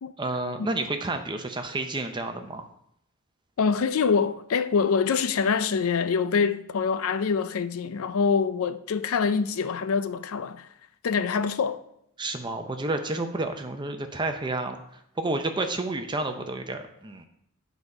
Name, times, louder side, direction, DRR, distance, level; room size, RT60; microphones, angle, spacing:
voice 1, 0.2-2.7 12.2-14.8 15.2-17.3, right 2 dB, 20° right, 0.6 m, -30 dB
voice 2, 3.6-10.7 11.0-11.8, left 5 dB, 75° left, 0.4 m, -25 dB
9.9 x 4.1 x 4.8 m
head